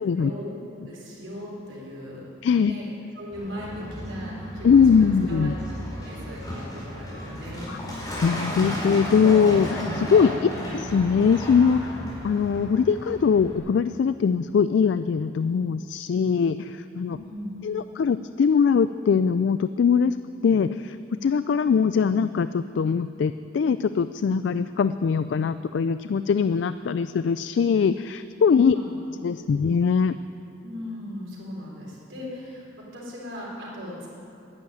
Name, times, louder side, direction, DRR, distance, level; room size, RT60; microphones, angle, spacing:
voice 1, 0.1-0.5 0.9-2.2 2.6-2.9 3.1-5.5 5.9-7.7 10.3-10.6 17.1-17.5 28.6-29.0 29.4-29.5 30.6-32.6 32.9-34.1, equal, 80° right, -4 dB, 4.0 m, -38 dB
Truck, 3.3-13.6, left 1 dB, 20° left, 4.3 m, -33 dB
voice 2, 4.6-5.5 7.7-7.8 8.2-17.2 17.6-20.2 20.4-21.0 21.2-28.8 29.2-30.1, left 6 dB, 65° left, 12 dB, 0.3 m, -22 dB
10.5 x 10.5 x 9.3 m, 2.7 s
head